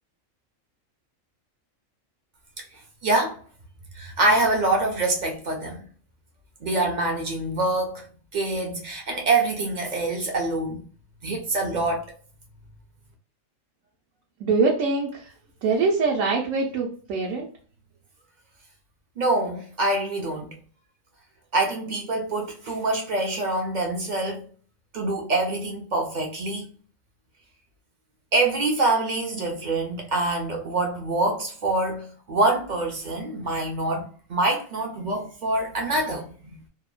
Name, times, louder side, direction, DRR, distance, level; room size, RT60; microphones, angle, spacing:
voice 1, 3.0-3.4 3.9-5.8 6.6-8.1 8.3-10.9 11.2-12.1 19.2-20.6 21.5-24.5 24.9-26.7 28.3-36.7, right 2 dB, 60° right, 0.5 m, -25 dB
voice 2, 14.4-15.2 15.6-17.5, right 4 dB, 80° right, 1.0 m, -23 dB
2.7 x 2.1 x 2.3 m
omnidirectional pair, 1.4 m